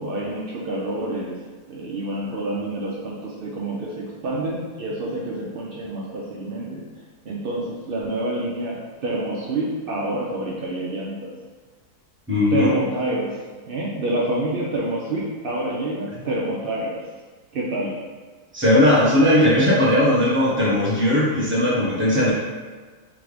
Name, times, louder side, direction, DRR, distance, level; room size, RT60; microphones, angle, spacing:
voice 1, 0.0-1.4 1.7-6.8 7.2-11.3 12.5-13.4 13.7-17.0 17.5-17.9, right 1 dB, 80° right, -5 dB, 0.5 m, -27 dB
voice 2, 12.3-12.7 18.5-22.3, left 1 dB, 10° right, -8 dB, 1.0 m, -18 dB
3.7 x 3.4 x 3.4 m, 1.4 s
omnidirectional pair, 1.7 m